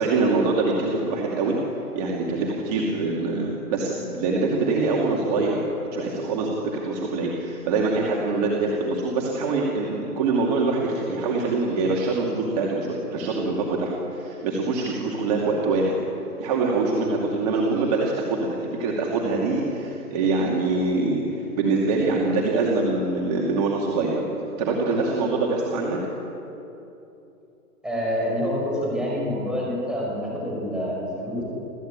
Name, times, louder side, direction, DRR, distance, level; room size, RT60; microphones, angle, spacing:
voice 1, 0.0-1.6 1.9-5.7 5.9-16.0 16.4-24.2 24.6-26.0, right 3 dB, 25° right, -2 dB, 2.5 m, -24 dB
voice 2, 27.8-31.4, equal, ahead, -5 dB, 5.6 m, -27 dB
27.0 x 15.5 x 8.9 m, 2.9 s
hypercardioid pair, 165°, 48 cm